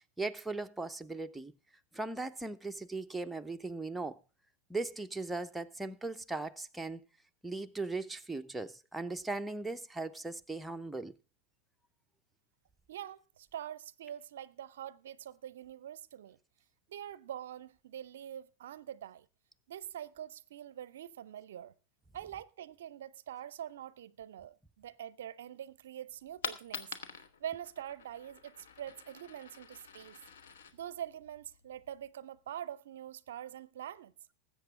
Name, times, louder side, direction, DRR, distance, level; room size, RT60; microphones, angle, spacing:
voice 1, 0.2-1.5 1.9-4.2 4.7-7.0 7.4-11.1, right 3 dB, 5° right, 0.6 m, -38 dB
voice 2, 12.9-16.4 16.9-19.3 19.7-21.7 22.1-30.2 30.7-34.1, right 10 dB, 60° right, 0.5 m, -45 dB
Coin (dropping), 26.1-32.1, left 6 dB, 60° left, 1.1 m, -47 dB
20.0 x 8.1 x 3.5 m
figure-of-eight pair, 90°, 0 cm